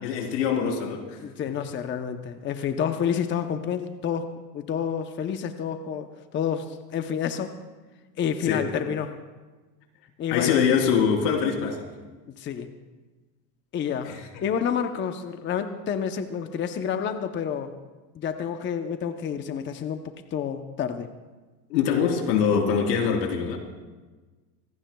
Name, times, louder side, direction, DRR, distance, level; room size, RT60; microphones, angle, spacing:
voice 1, 0.0-1.2 8.4-8.7 10.3-11.9 14.0-14.2 21.7-23.6, left 7 dB, 85° left, 2 dB, 3.5 m, -24 dB
voice 2, 1.2-4.3 4.5-6.1 6.3-7.5 8.2-9.1 10.2-10.6 12.4-12.7 13.7-14.1 14.4-17.7 18.1-20.0 20.3-21.1, left 8 dB, 25° left, 7 dB, 0.7 m, -29 dB
25.0 x 18.5 x 2.3 m, 1.3 s
supercardioid pair, 140°, 49 cm